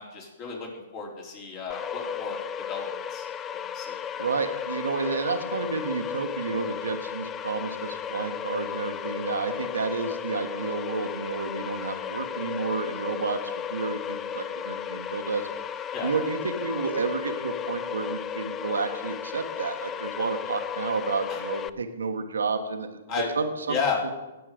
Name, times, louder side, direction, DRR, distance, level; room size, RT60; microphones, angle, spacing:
voice 1, 0.0-3.3 3.6-4.0 15.9-16.1 21.3-21.4 23.1-23.4 23.7-24.0, left 5 dB, 40° left, -2 dB, 4.2 m, -33 dB
sound 1, 1.7-21.7, left 8 dB, 25° left, 0.4 m, -34 dB
voice 2, 4.2-15.5 16.0-23.0 23.3-23.8, right 4 dB, 80° right, 6 dB, 1.2 m, -30 dB
17.5 x 7.0 x 5.1 m, 1.1 s
hypercardioid pair, 125°, 0 cm